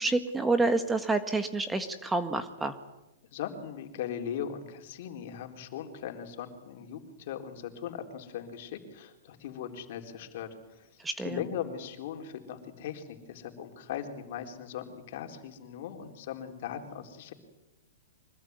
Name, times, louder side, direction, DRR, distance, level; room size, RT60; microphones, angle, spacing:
voice 1, 0.0-2.7 11.0-11.4, right 3 dB, 10° right, 9 dB, 1.6 m, -28 dB
voice 2, 3.3-10.9 11.2-17.3, left 9 dB, 55° left, 5 dB, 4.0 m, -39 dB
25.0 x 20.5 x 9.6 m, 0.99 s
hypercardioid pair, 140°, 0 cm